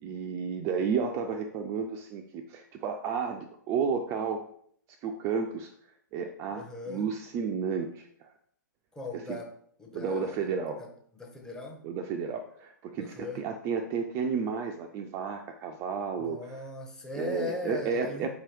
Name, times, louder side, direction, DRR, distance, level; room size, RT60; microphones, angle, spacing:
voice 1, 0.0-4.5 5.0-5.7 6.1-8.3 9.1-9.4 9.9-10.8 11.8-16.6 17.2-18.3, right 6 dB, 30° right, 5 dB, 0.4 m, -32 dB
voice 2, 6.5-7.1 8.9-9.5 9.8-10.5 10.8-10.9 11.2-11.9 12.9-13.5 16.2-18.3, left 2 dB, 5° left, 0 dB, 0.7 m, -39 dB
4.6 x 2.9 x 3.2 m, 0.64 s
figure-of-eight pair, 120°, 10 cm